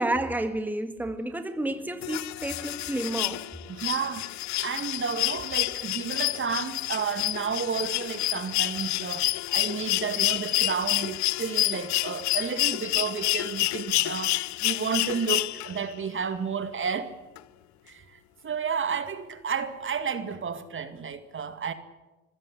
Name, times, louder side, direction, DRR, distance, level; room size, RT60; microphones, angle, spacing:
voice 1, 0.0-3.4, right 1 dB, 5° right, 2.0 m, -30 dB
sound 1, 2.0-15.9 17.4-17.5, left 17 dB, 50° left, 0.7 m, -29 dB
voice 2, 3.7-17.2 17.9-21.7, right 6 dB, 30° right, 2.1 m, -32 dB
26.5 x 15.5 x 10.0 m
hypercardioid pair, 65°, 37 cm